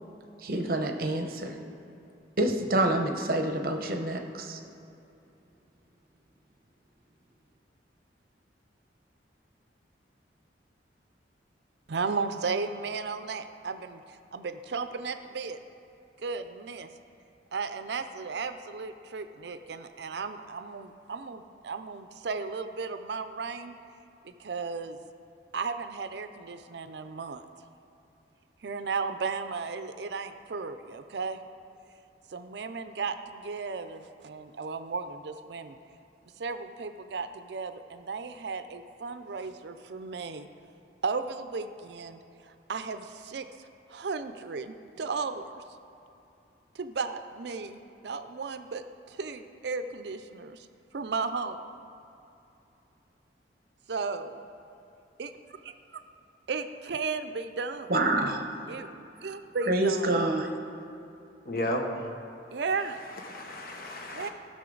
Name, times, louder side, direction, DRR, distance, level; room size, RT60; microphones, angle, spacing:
voice 1, 0.4-1.6 2.4-4.6 57.9-58.5 59.7-60.5, right 1 dB, 50° right, 5 dB, 0.8 m, -27 dB
voice 2, 11.9-15.6 16.2-16.9 17.5-23.7 24.2-25.0 25.5-27.4 28.6-31.4 32.3-35.8 36.4-40.5 41.0-45.5 46.7-50.7 50.9-51.6 53.9-54.4 55.2-55.3 56.5-57.9 58.7-60.2 62.5-63.0 64.1-64.3, right 4 dB, 70° right, 10 dB, 0.5 m, -35 dB
voice 3, 61.4-62.1 63.1-64.3, left 1 dB, 50° left, 1 dB, 1.2 m, -33 dB
16.5 x 6.4 x 3.9 m, 2.8 s
head